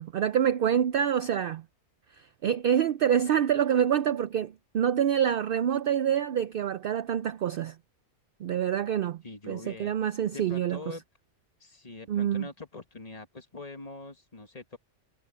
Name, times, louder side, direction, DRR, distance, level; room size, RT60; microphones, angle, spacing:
voice 1, 0.0-1.6 2.2-7.8 8.4-9.2 9.5-10.8 12.1-12.5, right 9 dB, 60° right, 0.6 m, -26 dB
voice 2, 9.2-9.9 10.3-11.0 11.6-14.8, left 3 dB, 30° left, 1.8 m, -43 dB
omnidirectional pair, 1.2 m